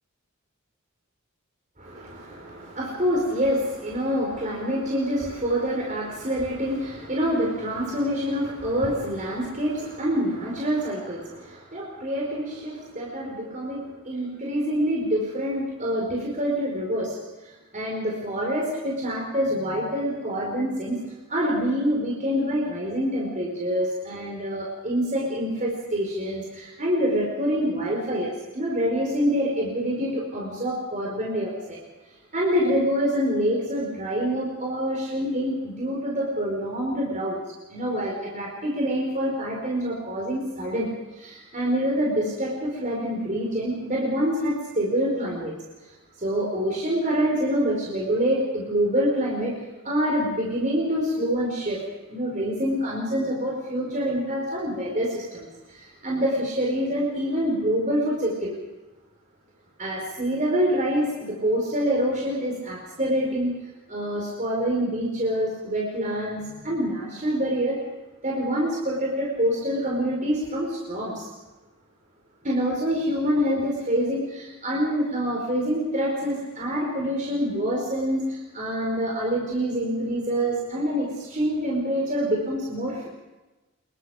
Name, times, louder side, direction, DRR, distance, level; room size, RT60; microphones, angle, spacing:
voice 1, 1.8-17.2 17.4-21.0 21.3-31.8 32.3-37.4 37.7-40.9 41.1-45.5 46.2-49.5 49.8-51.8 52.1-58.5 59.8-63.6 63.9-67.8 68.2-71.3 72.4-83.1, equal, 35° right, -2 dB, 4.9 m, -26 dB
26.5 x 22.5 x 5.1 m, 1.1 s
head